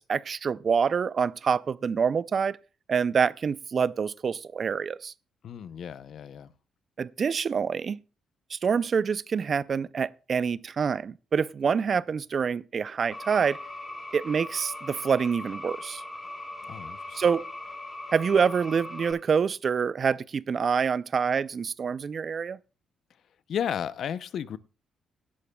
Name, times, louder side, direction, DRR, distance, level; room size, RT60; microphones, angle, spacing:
voice 1, 0.0-2.6 2.9-5.1 7.0-8.0 8.5-13.6 14.1-16.0 17.1-17.5 18.1-22.6, right 6 dB, 45° right, 0.4 m, -26 dB
voice 2, 5.4-6.5 16.7-17.2 23.5-24.6, left 8 dB, 65° left, 0.6 m, -33 dB
sound 1, 13.1-19.1, left 2 dB, 15° left, 5.0 m, -40 dB
17.5 x 11.0 x 2.3 m
cardioid pair, 90°, 0 cm